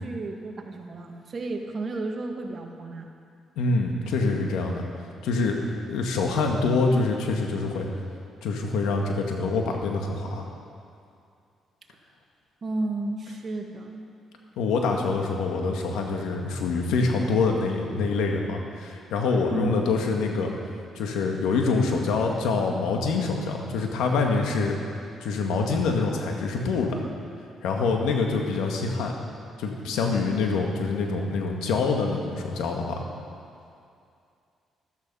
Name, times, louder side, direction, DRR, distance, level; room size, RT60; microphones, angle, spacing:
voice 1, 0.0-3.1 12.6-14.1 19.5-19.9, right 2 dB, 45° right, 3 dB, 1.6 m, -32 dB
voice 2, 3.6-7.9 8.4-10.5 14.6-20.5 20.9-24.8 25.2-27.0 27.6-29.1 29.6-33.0, left 4 dB, 90° left, 2 dB, 1.8 m, -25 dB
13.5 x 13.0 x 5.6 m, 2.4 s
cardioid pair, 90°, 0 cm